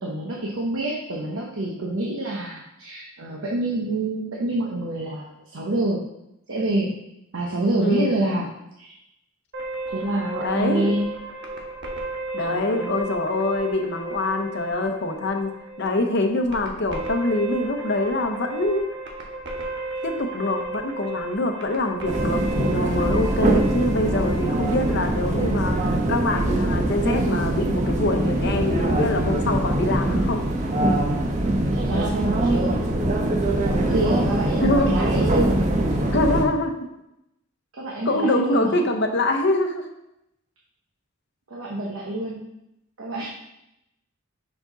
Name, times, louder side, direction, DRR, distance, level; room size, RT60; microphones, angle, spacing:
voice 1, 0.0-6.0 6.5-6.9 7.3-8.5 8.8-8.9 9.9-11.1 12.4-13.1 31.7-32.7 33.7-35.5 37.7-38.8 41.5-42.4 43.0-43.3, right 2 dB, 75° right, -2 dB, 0.9 m, -27 dB
voice 2, 7.8-8.1 10.4-10.9 12.3-18.8 20.0-30.4 34.6-34.9 36.1-36.9 38.1-39.9, left 2 dB, 55° left, 4 dB, 0.8 m, -24 dB
sound 1, 9.5-26.6, right 2 dB, 60° right, 1.1 m, -34 dB
sound 2, 22.1-36.5, right 1 dB, 35° right, 0.8 m, -23 dB
5.9 x 4.9 x 3.9 m, 0.84 s
head